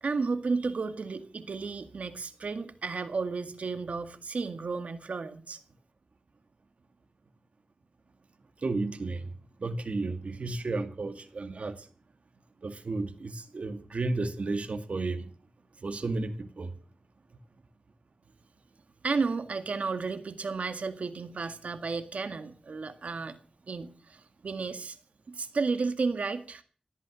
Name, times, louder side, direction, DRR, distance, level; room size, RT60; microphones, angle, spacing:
voice 1, 0.0-5.6 19.0-23.4 23.7-25.0 25.3-26.6, right 4 dB, 90° right, 10 dB, 1.9 m, -33 dB
voice 2, 8.6-9.3 9.6-11.9 12.6-15.3 15.8-16.7, right 3 dB, 70° right, 9 dB, 2.2 m, -33 dB
18.0 x 12.0 x 6.3 m, 0.41 s
wide cardioid pair, 65°, 2 cm